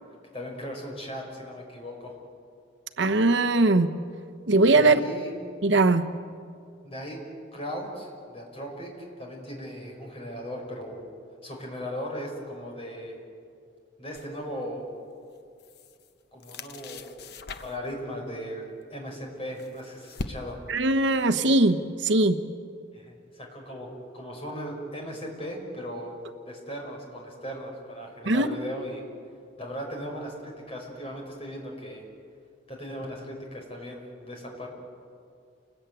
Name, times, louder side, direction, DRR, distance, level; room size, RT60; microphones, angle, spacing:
voice 1, 0.3-2.1 4.8-5.3 6.8-7.2 7.5-11.0 11.4-13.2 14.0-14.9 16.3-17.3 17.6-20.6 22.9-26.2 26.5-29.0 29.6-32.0 32.7-34.7, equal, 30° left, 0 dB, 5.7 m, -37 dB
voice 2, 3.0-3.9 4.5-5.0 5.6-6.1 20.7-22.4 28.3-28.5, right 2 dB, 65° right, 8 dB, 1.0 m, -20 dB
sound 1, 14.1-14.4 15.3-16.1 16.4-17.9 19.1-20.8, left 3 dB, 55° left, 1.0 m, -40 dB
29.0 x 20.5 x 9.2 m, 2.4 s
head